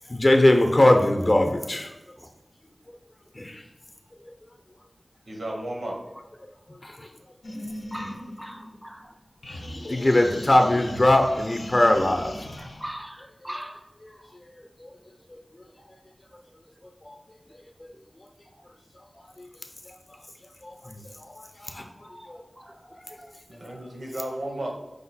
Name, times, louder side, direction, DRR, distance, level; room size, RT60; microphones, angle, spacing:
voice 1, 0.1-1.9 3.3-3.6 4.3-4.4 6.7-7.1 9.9-12.3 14.0-14.1 14.8-14.9 15.3-15.4 17.0-17.1 19.4-19.5 20.6-21.8 22.3-22.4, left 1 dB, 40° left, 4 dB, 0.6 m, -21 dB
voice 2, 5.3-6.0 23.5-24.7, right 1 dB, 80° right, 1 dB, 0.8 m, -33 dB
sound 1, 7.4-9.1 9.4-12.9, left 1 dB, 85° left, 0.6 m, -38 dB
voice 3, 7.9-9.1 12.8-13.8 22.1-22.3 22.6-22.7, equal, 10° right, 5 dB, 0.3 m, -39 dB
4.9 x 2.2 x 4.1 m, 1.0 s
wide cardioid pair, 55°, 0 cm